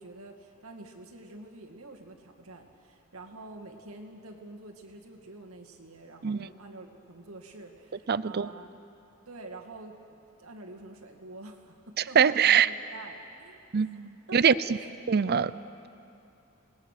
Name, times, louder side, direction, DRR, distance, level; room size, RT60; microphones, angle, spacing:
voice 1, 0.0-8.7 9.3-10.0 10.4-14.4, right 2 dB, 85° right, 2 dB, 2.3 m, -47 dB
voice 2, 8.1-8.5 12.1-12.7 13.7-14.5 15.1-15.5, right 7 dB, 50° right, 17 dB, 0.5 m, -23 dB
28.0 x 20.5 x 6.7 m, 2.7 s
head